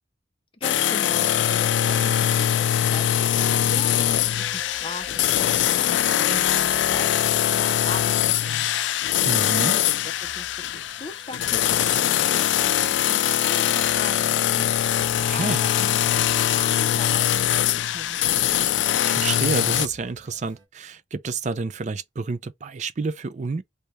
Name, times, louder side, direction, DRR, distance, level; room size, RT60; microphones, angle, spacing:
voice 1, 0.5-18.2, left 2 dB, 30° left, 0.6 m, -40 dB
sound 1, 0.6-19.9, left 11 dB, 75° left, 0.3 m, -22 dB
sound 2, 4.2-8.5, left 2 dB, 15° right, 1.6 m, -47 dB
sound 3, 6.6-20.7, left 1 dB, 90° right, 1.1 m, -53 dB
voice 2, 9.2-9.7 15.3-15.7 18.9-23.6, right 4 dB, 40° right, 0.4 m, -29 dB
3.3 x 2.7 x 3.1 m
head